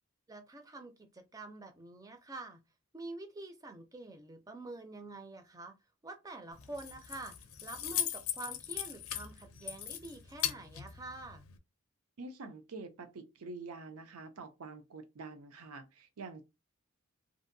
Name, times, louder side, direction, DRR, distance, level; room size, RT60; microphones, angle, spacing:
voice 1, 0.3-2.6 2.9-5.7 6.0-7.4 7.6-11.4, right 2 dB, 15° right, 0.4 m, -47 dB
Keys jangling, 6.5-11.6, left 11 dB, 75° left, 0.5 m, -39 dB
voice 2, 12.2-16.4, right 3 dB, 85° right, 0.6 m, -46 dB
2.6 x 2.5 x 2.6 m
head